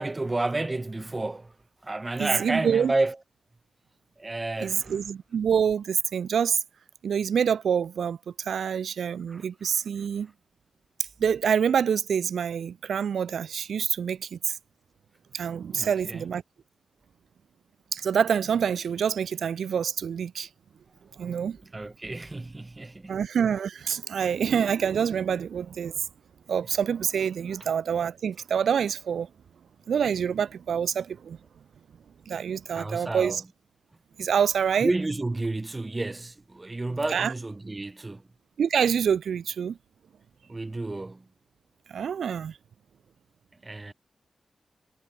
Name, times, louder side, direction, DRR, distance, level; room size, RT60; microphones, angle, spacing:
voice 1, 0.0-1.5 1.8-3.2 4.2-4.9 9.3-9.4 15.7-16.3 21.7-23.2 32.7-33.4 34.8-38.2 40.5-41.3 43.6-43.9, right 2 dB, 20° right, 3.6 m, -31 dB
voice 2, 2.2-2.9 4.6-6.6 7.0-10.3 11.2-14.6 15.3-16.4 17.9-20.5 21.2-21.6 23.1-26.0 26.5-29.3 29.9-31.4 32.3-33.4 34.2-34.9 37.1-37.3 38.6-39.8 41.9-42.6, right 7 dB, 85° right, 4.1 m, -26 dB
wide cardioid pair, 135°, 0 cm